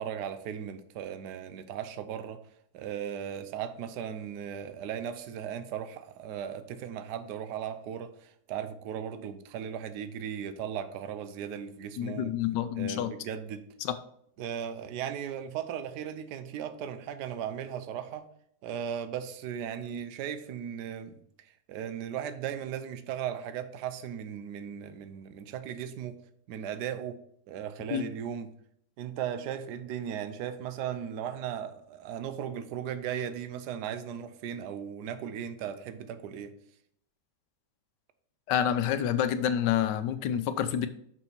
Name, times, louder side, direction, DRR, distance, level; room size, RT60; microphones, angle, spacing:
voice 1, 0.0-2.4 2.7-12.3 12.8-13.7 14.4-18.3 18.6-26.2 26.5-27.2 27.5-28.5 29.0-36.5, right 9 dB, 75° right, 10 dB, 1.2 m, -37 dB
voice 2, 12.0-13.1 13.8-13.9 27.9-28.1 38.5-40.9, left 10 dB, 80° left, 11 dB, 1.3 m, -28 dB
6.2 x 6.1 x 4.4 m, 0.69 s
omnidirectional pair, 1.8 m